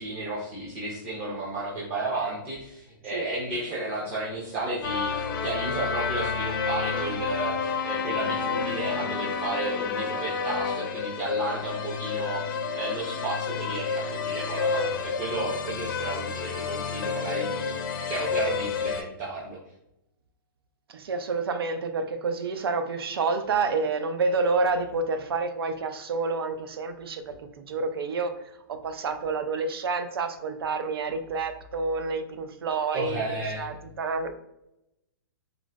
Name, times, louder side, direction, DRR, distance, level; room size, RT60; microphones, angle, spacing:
voice 1, 0.0-19.6 32.9-33.7, right 2 dB, 20° right, -6 dB, 0.5 m, -33 dB
sound 1, 4.8-19.0, left 5 dB, 65° left, 0.5 m, -30 dB
voice 2, 20.9-28.3 28.7-33.3 33.6-34.3, right 4 dB, 90° right, 9 dB, 0.4 m, -29 dB
3.7 x 2.0 x 2.2 m, 0.84 s
hypercardioid pair, 160°, 12 cm